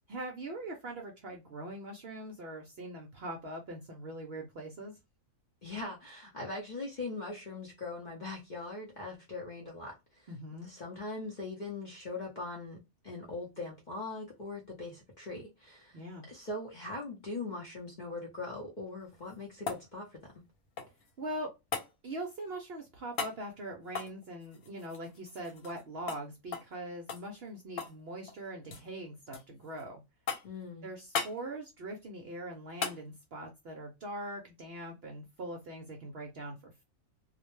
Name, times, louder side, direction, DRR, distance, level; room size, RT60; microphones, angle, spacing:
voice 1, 0.1-4.9 10.3-10.7 15.9-16.2 21.2-21.5 22.0-30.0 30.8-36.8, right 1 dB, 60° right, 0.7 m, -42 dB
voice 2, 5.6-10.3 10.6-12.8 13.0-16.0 16.3-20.3 30.4-30.9, left 3 dB, 45° left, 0.6 m, -41 dB
sound 1, 19.0-21.1 21.7-21.9 23.1-23.4 23.9-25.8 26.1-26.2 26.5-26.7 27.1-28.0 28.3-28.9 29.3-29.8 30.3-30.6 31.1-31.4 32.8-33.0 35.4-35.5, left 5 dB, 85° left, 1.2 m, -38 dB
2.5 x 2.1 x 3.0 m
omnidirectional pair, 1.5 m